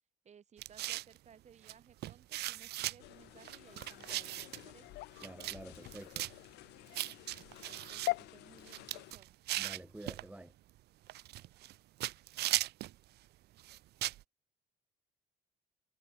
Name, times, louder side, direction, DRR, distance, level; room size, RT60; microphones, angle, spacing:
voice 1, 0.2-5.0 7.7-9.3 11.4-11.5, right 7 dB, 40° right, 6.9 m, -61 dB
sound 1, 0.6-1.2 1.7-1.8 2.0-3.0 3.4-4.6 5.2-5.6 5.8-6.3 6.9-8.1 8.6-10.2 11.1-11.8 12.0-12.9 13.6-14.2, right 16 dB, 75° right, 1.5 m, -38 dB
sound 2, 3.0-9.1, left 20 dB, 90° left, 1.8 m, -44 dB
voice 2, 5.2-6.3 9.6-10.5, right 1 dB, 10° right, 1.1 m, -49 dB
cardioid pair, 110°, 17 cm